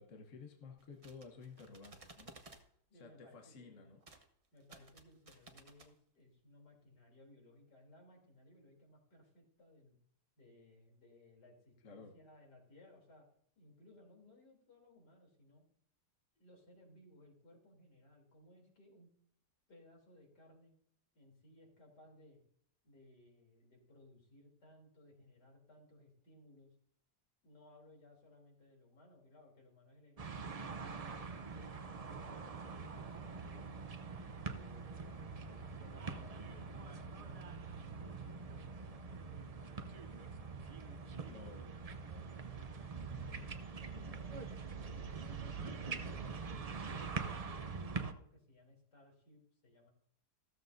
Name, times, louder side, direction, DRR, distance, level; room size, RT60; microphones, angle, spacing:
voice 1, 0.0-2.4 2.9-4.0 11.8-12.1 41.3-41.7 43.1-43.5, left 4 dB, 55° left, 3 dB, 1.4 m, -54 dB
sound 1, 0.8-2.7 4.0-4.3 4.6-5.9, right 2 dB, 25° right, 0.8 m, -58 dB
voice 2, 2.9-3.9 4.5-10.0 10.4-13.3 13.6-15.6 16.4-19.1 19.7-20.7 21.1-22.4 22.8-26.8 27.4-33.7 34.4-40.0 40.6-42.9 43.4-45.4 45.9-46.6 46.9-49.9, left 1 dB, 85° left, 0 dB, 3.8 m, -62 dB
sound 2, 30.2-48.1, right 4 dB, 70° right, 0.3 m, -44 dB
15.0 x 13.5 x 2.6 m, 0.66 s
omnidirectional pair, 1.8 m